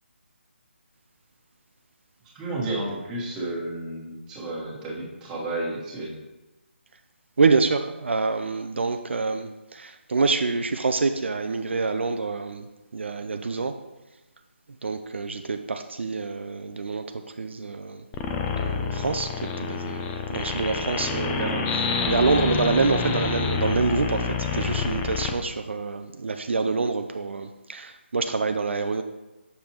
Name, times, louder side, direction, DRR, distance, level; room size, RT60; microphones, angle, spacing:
voice 1, 2.3-6.2, right 2 dB, 10° right, -5 dB, 1.5 m, -32 dB
voice 2, 7.4-12.7 12.9-13.8 14.8-18.0 18.5-29.0, right 4 dB, 70° right, 7 dB, 0.4 m, -26 dB
sound 1, 18.1-25.3, left 5 dB, 15° left, 0.4 m, -28 dB
6.8 x 6.6 x 3.0 m, 1.1 s
figure-of-eight pair, 150°, 7 cm